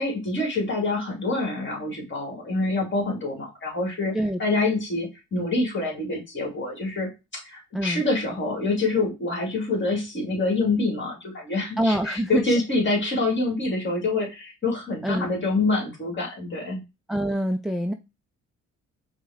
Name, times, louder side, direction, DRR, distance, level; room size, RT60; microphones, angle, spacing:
voice 1, 0.0-4.1 4.4-16.8, left 2 dB, 40° left, 1 dB, 1.9 m, -26 dB
voice 2, 11.8-12.6 15.0-15.4 17.1-17.9, right 1 dB, ahead, 6 dB, 0.3 m, -25 dB
5.0 x 2.2 x 3.5 m, 0.26 s
cardioid pair, 90°, 30 cm